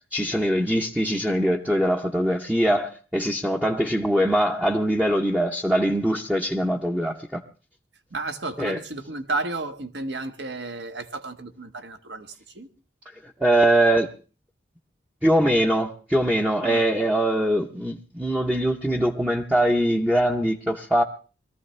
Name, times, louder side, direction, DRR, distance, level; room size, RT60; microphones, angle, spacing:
voice 1, 0.1-7.4 8.6-8.8 13.4-14.1 15.2-21.0, right 1 dB, 5° right, 0.8 m, -22 dB
voice 2, 8.1-12.3 12.5-12.7 16.6-16.8, right 3 dB, 70° right, 1.3 m, -32 dB
22.0 x 14.5 x 3.2 m
head